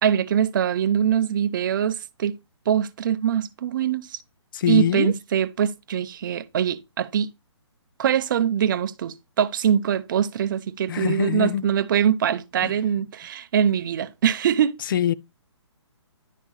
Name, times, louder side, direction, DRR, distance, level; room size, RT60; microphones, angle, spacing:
voice 1, 0.0-2.3 2.7-4.2 4.7-7.3 8.0-14.8, right 9 dB, 45° right, 0.6 m, -23 dB
voice 2, 4.5-5.1 10.9-11.6 12.6-12.8 14.9-15.1, left 11 dB, 45° left, 0.4 m, -24 dB
11.0 x 3.6 x 3.0 m
hypercardioid pair, 155°, 15 cm